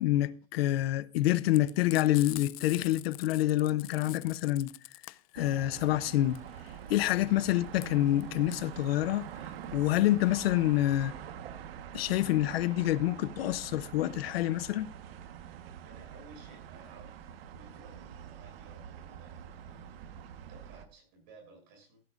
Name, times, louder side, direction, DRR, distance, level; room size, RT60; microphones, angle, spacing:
voice 1, 0.0-4.7 5.3-6.4 6.9-9.3 9.7-11.1 11.9-14.9, left 15 dB, 80° left, 0.8 m, -27 dB
Frying (food), 1.5-10.3, left 19 dB, 40° left, 0.4 m, -46 dB
sound 1, 5.3-20.8, right 9 dB, 80° right, 1.4 m, -45 dB
voice 2, 5.4-5.8 7.0-7.3 15.8-22.0, right 3 dB, 45° right, 6.7 m, -57 dB
16.0 x 13.5 x 2.5 m
supercardioid pair, 175°, 30 cm